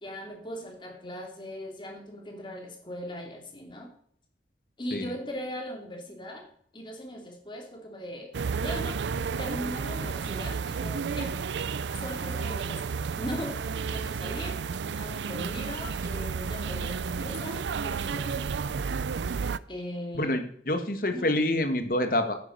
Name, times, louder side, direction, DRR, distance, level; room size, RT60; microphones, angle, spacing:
voice 1, 0.0-3.9 4.8-6.5 6.7-8.3 8.6-9.0 9.4-11.4 11.9-14.6 14.9-18.8 19.7-20.4 21.1-21.3, left 1 dB, 25° left, 2 dB, 2.7 m, -39 dB
sound 1, 8.3-19.6, right 5 dB, 90° right, 0.4 m, -32 dB
voice 2, 20.1-22.4, left 1 dB, 50° left, 7 dB, 1.5 m, -27 dB
10.0 x 9.5 x 5.3 m, 0.62 s
head